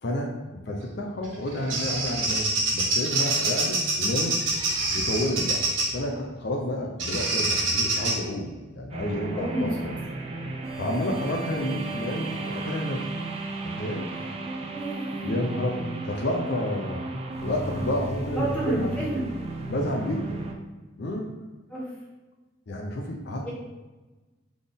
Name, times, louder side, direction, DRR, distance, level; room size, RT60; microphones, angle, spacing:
voice 1, 0.0-4.4 4.9-5.7 5.9-9.9 10.8-13.1 13.6-14.1 15.2-17.0 17.4-18.9 19.7-20.4 21.0-21.3 22.7-23.5, left 1 dB, 60° left, 1 dB, 0.5 m, -30 dB
Bird vocalization bird call bird song, 1.2-6.0 7.0-8.2, right 2 dB, 85° right, 1.4 m, -26 dB
sound 1, 8.9-20.5, right 2 dB, 30° right, 0.5 m, -34 dB
voice 2, 9.3-9.7 14.1-14.3 14.7-15.3 18.3-19.3 21.7-21.9 23.4-23.5, right 1 dB, 5° left, -7 dB, 1.2 m, -30 dB
4.0 x 3.6 x 3.5 m, 1.2 s
head